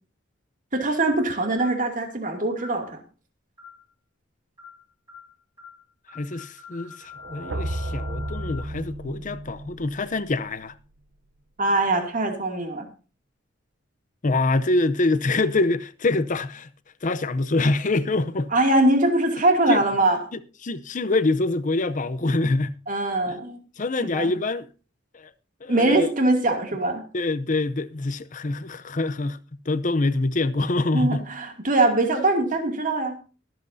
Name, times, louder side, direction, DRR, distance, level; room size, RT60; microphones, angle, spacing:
voice 1, 0.7-3.0 11.6-12.9 18.5-20.2 22.9-23.6 24.0-24.3 25.7-27.0 30.9-33.2, right 2 dB, 45° right, 2.5 m, -22 dB
sound 1, 1.6-1.9 2.6-2.8 3.6-3.9 4.6-4.8 5.1-5.3 5.6-5.8 6.1-8.6, left 6 dB, 25° right, 6.8 m, -44 dB
voice 2, 6.1-10.7 14.2-16.7 17.0-18.5 19.7-19.8 20.6-22.7 23.3-23.4 23.8-24.7 25.1-25.3 25.6-26.1 27.1-29.4 29.7-31.3, left 2 dB, 40° left, 0.7 m, -25 dB
sound 2, 7.2-11.1, right 1 dB, 65° right, 0.8 m, -34 dB
23.0 x 7.7 x 2.7 m
head